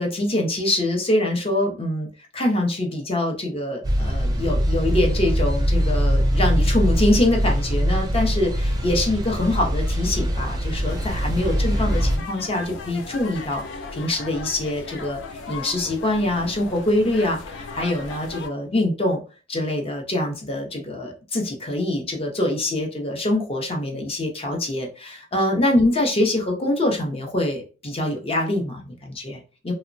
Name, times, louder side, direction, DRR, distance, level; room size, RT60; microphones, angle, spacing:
voice 1, 0.0-13.6 13.9-19.2 19.5-29.7, left 1 dB, 30° left, 2 dB, 0.6 m, -24 dB
sound 1, 3.8-12.2, equal, 20° right, 0.4 m, -22 dB
sound 2, 10.9-18.5, left 4 dB, 70° left, 0.4 m, -37 dB
2.9 x 2.1 x 2.5 m, 0.35 s
head